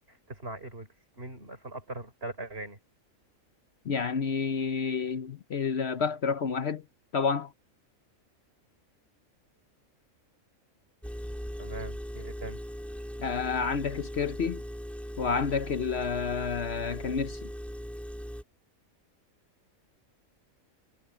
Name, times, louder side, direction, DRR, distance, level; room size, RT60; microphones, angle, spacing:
voice 1, 0.1-0.9 1.2-2.8 11.6-12.6, right 2 dB, 45° right, 4.7 m, -41 dB
voice 2, 3.9-6.8 7.1-7.5 13.2-14.6 15.2-17.4, left 5 dB, 55° left, 1.0 m, -29 dB
Engine, 11.0-18.4, equal, ahead, 3.1 m, -39 dB
omnidirectional pair, 1.4 m